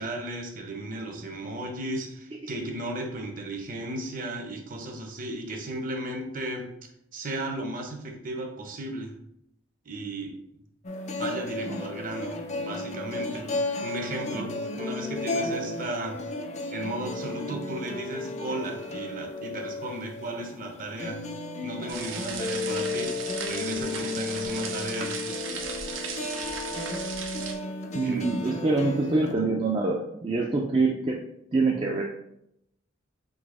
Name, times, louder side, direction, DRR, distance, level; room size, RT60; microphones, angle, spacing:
voice 1, 0.0-6.7 7.1-9.1 9.8-10.4 11.2-16.2 16.7-21.2 21.6-23.2 23.4-25.5 25.9-26.0 28.0-28.6, right 1 dB, 45° right, 3 dB, 0.8 m, -35 dB
sound 1, 10.8-29.3, left 2 dB, 35° left, 0.5 m, -34 dB
sound 2, 21.9-27.5, right 6 dB, 85° right, 0.7 m, -36 dB
voice 2, 27.9-31.2 31.5-32.0, right 3 dB, 25° right, -1 dB, 0.4 m, -25 dB
4.0 x 2.8 x 4.7 m, 0.79 s
head